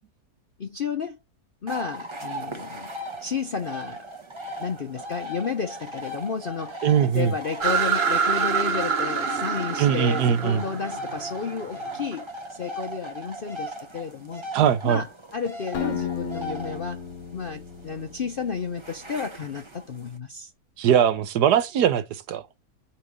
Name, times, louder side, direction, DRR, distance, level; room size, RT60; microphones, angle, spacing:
voice 1, 0.6-1.2 1.6-2.9 3.2-4.1 4.6-14.4 14.8-17.0 17.3-20.5, left 6 dB, 55° left, 0.6 m, -32 dB
sound 1, 1.7-20.2, right 1 dB, 20° right, 0.9 m, -38 dB
voice 2, 6.8-7.3 9.8-10.6 14.5-15.0 20.8-22.4, right 9 dB, 75° right, 1.3 m, -21 dB
sound 2, 7.6-12.2, right 6 dB, 45° right, 1.1 m, -26 dB
Acoustic guitar, 15.7-18.8, left 6 dB, 75° left, 1.6 m, -34 dB
8.8 x 3.1 x 5.0 m
omnidirectional pair, 1.8 m